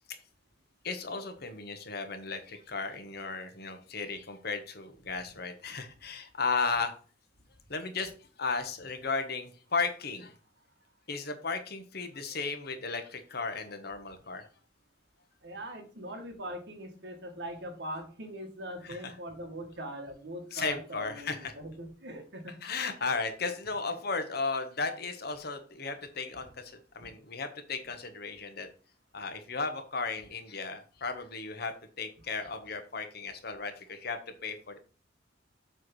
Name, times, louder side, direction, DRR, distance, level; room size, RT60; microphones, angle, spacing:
voice 1, 0.8-6.9 7.7-8.1 8.4-10.3 11.1-14.4 18.8-19.1 20.5-21.5 22.6-28.7 29.1-34.8, left 4 dB, 55° left, 7 dB, 1.2 m, -35 dB
voice 2, 15.4-22.6, equal, 65° right, 4 dB, 1.8 m, -41 dB
7.8 x 3.5 x 6.3 m, 0.39 s
head